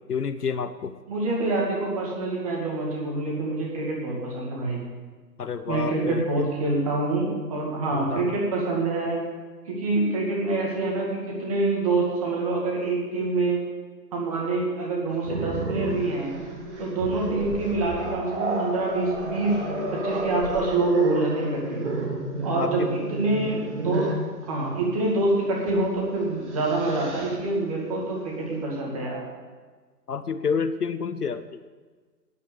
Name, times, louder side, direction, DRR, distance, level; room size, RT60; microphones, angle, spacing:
voice 1, 0.1-1.0 5.4-6.5 7.9-8.4 22.6-22.9 30.1-31.5, left 6 dB, 65° left, 12 dB, 0.8 m, -29 dB
voice 2, 1.1-4.8 5.7-9.2 9.7-13.6 14.1-16.3 16.8-19.6 19.9-21.8 22.4-24.1 24.4-29.2, right 2 dB, 20° right, -2 dB, 2.2 m, -26 dB
Growling, 15.2-24.3 25.6-25.8 26.2-27.4, right 2 dB, 45° right, 1.9 m, -31 dB
9.6 x 8.3 x 8.4 m, 1.4 s
figure-of-eight pair, 160°, 50 cm